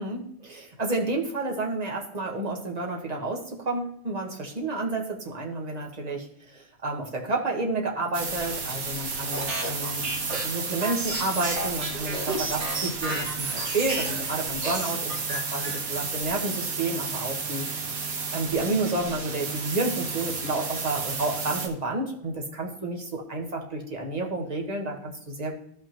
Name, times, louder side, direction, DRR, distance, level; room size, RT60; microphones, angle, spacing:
voice 1, 0.0-17.6 18.3-25.5, right 2 dB, 30° right, 0 dB, 1.3 m, -30 dB
sound 1, 8.1-21.7, right 4 dB, 80° right, 1.6 m, -32 dB
sound 2, 9.3-14.3 14.6-16.3, right 2 dB, 55° right, 1.7 m, -32 dB
13.5 x 5.6 x 2.9 m, 0.69 s
omnidirectional pair, 1.5 m